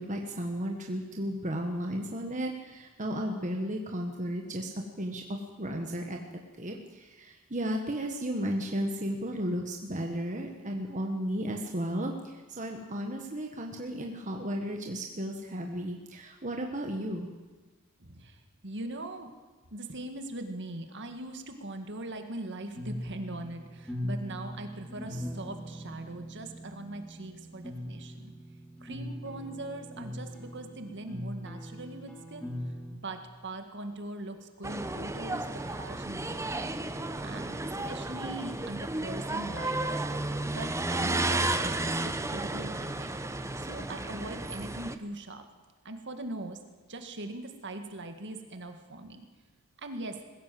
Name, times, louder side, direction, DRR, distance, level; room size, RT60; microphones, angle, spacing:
voice 1, 0.0-4.7 5.0-6.2 6.6-17.3, equal, 35° right, 2 dB, 1.5 m, -34 dB
voice 2, 18.0-19.3 19.7-28.3 28.8-32.5 32.9-36.7 37.2-39.8 40.5-43.2 43.6-45.5 45.8-46.6 46.9-49.3 49.8-50.2, right 2 dB, 55° right, 6 dB, 2.0 m, -41 dB
sound 1, 22.8-33.0, equal, 5° left, 2.9 m, -40 dB
sound 2, 34.6-45.0, right 2 dB, 15° right, 0.8 m, -33 dB
20.5 x 16.5 x 7.7 m, 1.3 s
head